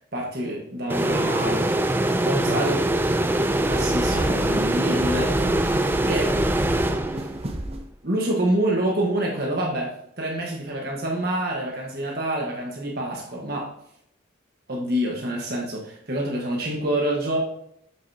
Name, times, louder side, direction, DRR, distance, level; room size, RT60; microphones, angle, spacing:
voice 1, 0.1-1.7 2.2-2.9 3.6-6.3 8.0-13.7 14.7-17.4, right 1 dB, 50° right, -2 dB, 1.5 m, -27 dB
sound 1, 0.9-7.6, right 1 dB, 10° right, 0.4 m, -23 dB
sound 2, 2.9-7.9, right 1 dB, 30° right, 0.8 m, -32 dB
7.8 x 6.5 x 2.9 m, 0.71 s
head